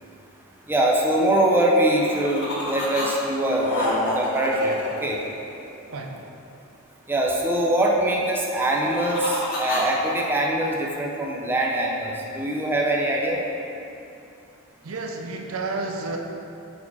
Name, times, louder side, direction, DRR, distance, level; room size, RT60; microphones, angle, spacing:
voice 1, 0.7-5.2 7.1-13.4, right 1 dB, 10° right, -2 dB, 0.6 m, -23 dB
sound 1, 1.9-3.1 3.3-5.8 8.5-10.3, left 1 dB, 55° left, 1.4 m, -29 dB
voice 2, 5.9-6.3 14.8-16.2, right 3 dB, 75° right, 2 dB, 0.6 m, -31 dB
4.7 x 4.4 x 5.4 m, 2.7 s
head